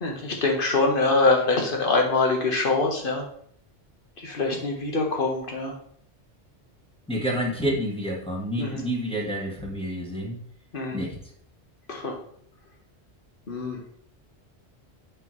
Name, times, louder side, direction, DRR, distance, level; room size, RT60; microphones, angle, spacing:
voice 1, 0.0-3.3 4.2-5.7 8.6-8.8 10.7-11.0 11.9-12.2 13.5-13.8, left 3 dB, 50° left, 1 dB, 1.5 m, -24 dB
voice 2, 7.1-10.4 10.9-11.2, equal, 5° left, -2 dB, 1.4 m, -28 dB
6.8 x 5.7 x 3.2 m, 0.62 s
omnidirectional pair, 1.2 m